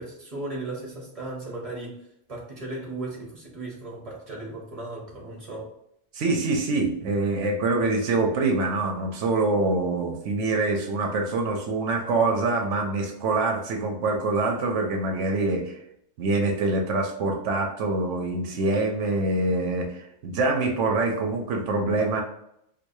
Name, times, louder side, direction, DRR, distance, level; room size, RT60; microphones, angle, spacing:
voice 1, 0.0-5.7, right 2 dB, 30° right, -1 dB, 1.2 m, -36 dB
voice 2, 6.1-15.8 16.2-22.2, right 3 dB, 80° right, 2 dB, 1.0 m, -25 dB
4.6 x 2.6 x 2.6 m, 0.76 s
omnidirectional pair, 1.2 m